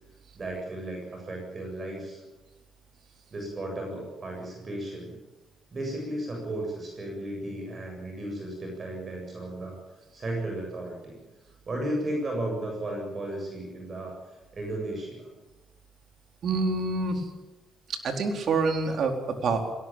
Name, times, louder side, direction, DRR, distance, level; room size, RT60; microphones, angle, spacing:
voice 1, 0.3-2.2 3.3-5.2 5.7-9.8 10.1-11.2 11.7-14.2 14.5-15.3, right 1 dB, 40° right, 1 dB, 7.7 m, -34 dB
voice 2, 16.4-17.3 18.0-19.7, right 3 dB, 60° right, 4 dB, 4.2 m, -27 dB
21.0 x 18.5 x 9.0 m, 1.1 s
cardioid pair, 90°, 0 cm